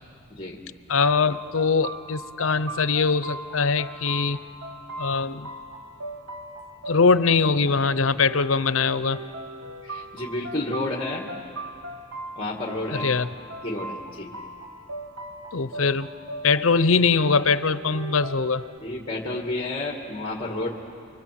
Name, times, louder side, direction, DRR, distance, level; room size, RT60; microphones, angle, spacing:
voice 1, 0.9-4.4 5.0-5.5 6.9-9.2 13.0-13.3 15.5-16.1 16.4-18.6, left 4 dB, 75° left, 14 dB, 0.7 m, -22 dB
sound 1, 1.0-18.8, right 1 dB, 85° right, 2.5 m, -39 dB
voice 2, 9.8-11.3 12.4-13.1 13.6-14.3 18.8-20.7, left 2 dB, 25° left, -1 dB, 2.0 m, -30 dB
29.5 x 24.5 x 7.6 m, 2.3 s
head